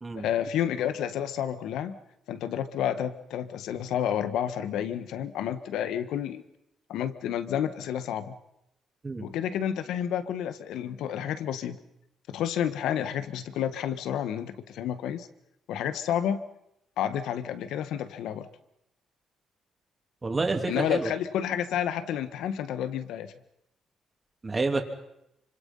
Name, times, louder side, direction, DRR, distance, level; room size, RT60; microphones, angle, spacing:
voice 1, 0.1-2.0 2.3-6.4 6.9-8.4 9.2-11.8 12.3-15.3 15.7-16.4 17.0-18.5 20.7-23.3, left 9 dB, 85° left, 11 dB, 1.5 m, -30 dB
voice 2, 20.2-21.1 24.4-24.8, right 3 dB, 25° right, 4 dB, 3.3 m, -28 dB
26.0 x 25.0 x 5.6 m, 0.81 s
cardioid pair, 90°, 0 cm